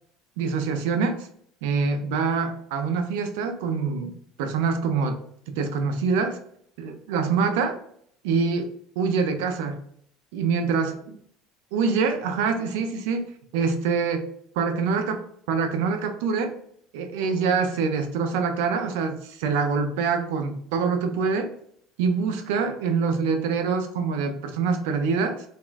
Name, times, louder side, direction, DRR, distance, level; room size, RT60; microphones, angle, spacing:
voice 1, 0.4-1.3 1.6-5.2 5.5-6.4 6.8-7.8 8.2-8.7 9.0-9.8 10.3-11.0 11.7-13.3 13.5-14.3 14.6-15.2 15.5-16.5 16.9-21.5 22.0-25.4, right 5 dB, 75° right, 7 dB, 0.5 m, -25 dB
4.0 x 2.3 x 2.5 m, 0.65 s
hypercardioid pair, 75°, 0 cm